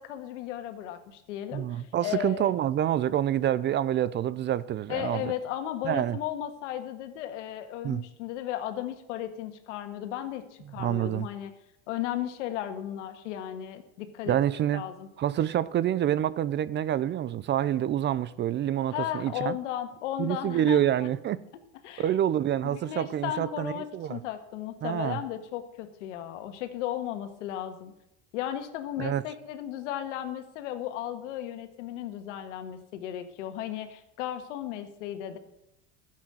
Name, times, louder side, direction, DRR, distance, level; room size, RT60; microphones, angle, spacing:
voice 1, 0.0-2.5 4.9-11.5 11.9-14.4 14.7-15.1 18.9-21.1 21.8-22.1 22.6-27.9 28.3-35.4, left 11 dB, 85° left, 1.6 m, -35 dB
voice 2, 1.5-5.3 5.8-6.2 7.8-8.0 10.8-11.3 14.3-14.8 15.2-19.6 20.2-21.4 22.0-24.2 24.8-25.2 29.0-29.2, right 11 dB, 30° right, 0.5 m, -27 dB
11.5 x 7.4 x 7.7 m
supercardioid pair, 110°, 36 cm